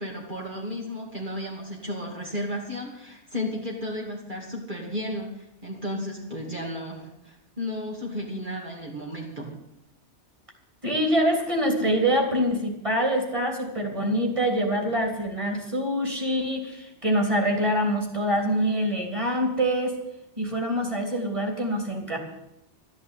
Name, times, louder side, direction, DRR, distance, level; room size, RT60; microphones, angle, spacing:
voice 1, 0.0-9.5, left 1 dB, 45° right, -3 dB, 3.0 m, -33 dB
voice 2, 10.8-20.0 20.4-22.2, equal, 25° right, 2 dB, 3.7 m, -25 dB
14.0 x 11.0 x 9.4 m, 0.83 s
omnidirectional pair, 1.2 m